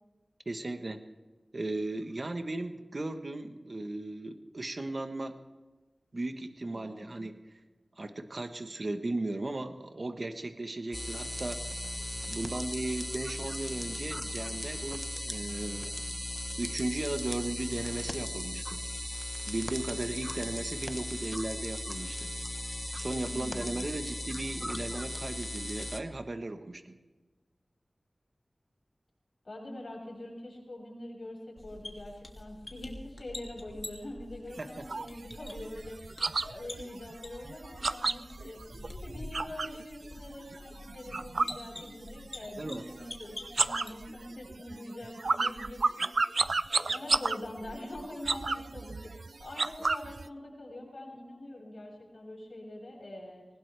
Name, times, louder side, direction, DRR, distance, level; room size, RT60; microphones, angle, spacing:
voice 1, 0.4-1.0 1.5-5.4 6.1-7.3 8.0-11.6 12.3-16.0 16.6-18.8 19.5-22.3 22.9-27.0 34.6-34.7 42.6-42.8, right 2 dB, 55° right, 7 dB, 1.2 m, -36 dB
voice 2, 6.7-7.3 23.2-23.9 29.4-46.0 46.7-49.1 49.4-53.4, left 1 dB, 70° left, -3 dB, 7.2 m, -44 dB
sound 1, 10.9-26.0, left 1 dB, 15° left, 1.2 m, -37 dB
sound 2, 31.6-44.3, left 1 dB, 45° left, 2.7 m, -47 dB
sound 3, 34.5-39.8 40.2-42.3 42.6-43.1 43.4-50.3, right 3 dB, 80° right, 0.4 m, -32 dB
21.0 x 19.5 x 3.4 m, 1.3 s
wide cardioid pair, 60°, 0 cm